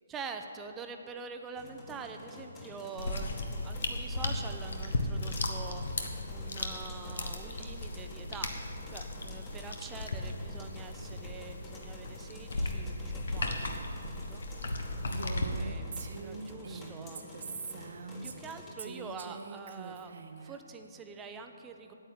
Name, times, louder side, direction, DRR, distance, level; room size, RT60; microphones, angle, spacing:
voice 1, 0.1-21.9, right 4 dB, 15° right, 6 dB, 0.8 m, -46 dB
sound 1, 1.5-18.7, left 2 dB, 20° left, 1.9 m, -50 dB
sound 2, 3.0-15.5, left 2 dB, 60° left, 1.3 m, -36 dB
Female speech woman speaking, 15.1-18.5 18.8-20.6, right 4 dB, 55° right, 0.9 m, -43 dB
9.1 x 8.8 x 9.2 m, 2.8 s
figure-of-eight pair, 140°, 0 cm